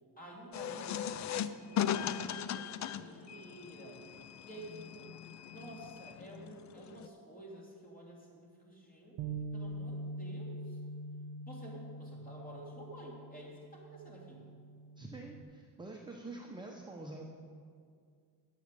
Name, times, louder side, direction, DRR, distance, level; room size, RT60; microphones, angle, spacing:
voice 1, 0.2-4.0 4.4-5.2 5.5-9.2 9.5-10.8 11.5-14.4, right 1 dB, 20° left, -3 dB, 3.1 m, -51 dB
sound 1, 0.5-7.1, left 9 dB, 45° left, 0.5 m, -38 dB
Bass guitar, 9.2-15.4, right 2 dB, 75° right, 0.8 m, -44 dB
voice 2, 15.0-17.3, right 2 dB, 10° right, -1 dB, 0.9 m, -46 dB
9.1 x 8.4 x 6.9 m, 2.2 s
cardioid pair, 115°, 42 cm